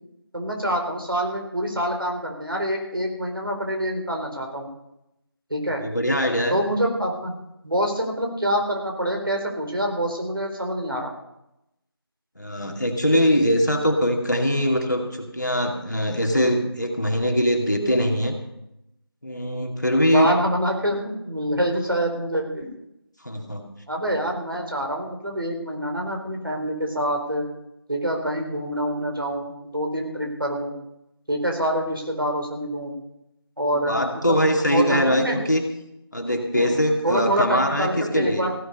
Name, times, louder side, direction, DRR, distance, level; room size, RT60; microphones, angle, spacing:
voice 1, 0.3-4.7 5.5-5.8 6.5-7.3 7.6-11.1 20.1-22.7 23.9-27.5 27.9-30.7 31.3-32.9 33.6-35.4 36.5-36.7 37.0-38.5, equal, 60° right, 2 dB, 4.0 m, -26 dB
voice 2, 5.8-6.6 12.4-18.4 19.2-20.3 23.2-23.6 33.9-35.6 36.1-38.5, equal, 45° left, 2 dB, 2.3 m, -22 dB
16.0 x 11.5 x 5.5 m, 0.85 s
figure-of-eight pair, 180°, 13 cm